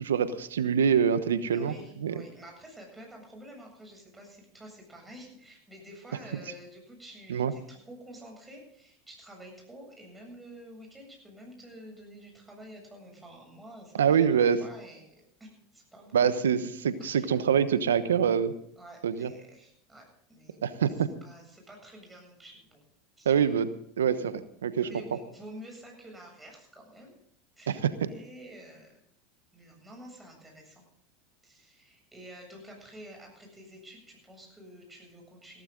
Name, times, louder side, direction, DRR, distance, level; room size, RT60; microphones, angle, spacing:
voice 1, 0.0-1.7 2.0-2.1 7.3-7.5 14.0-14.6 16.1-18.5 19.0-19.3 20.6-21.1 23.2-23.7 24.0-24.9 27.7-27.9, right 7 dB, 85° right, 13 dB, 1.0 m, -25 dB
voice 2, 1.5-16.3 17.0-17.3 18.8-22.8 23.2-23.4 24.8-27.2 27.6-29.0 29.5-30.8 31.4-35.6, right 1 dB, 10° right, 1 dB, 7.7 m, -49 dB
17.0 x 14.5 x 3.9 m, 0.67 s
hypercardioid pair, 95°, 0 cm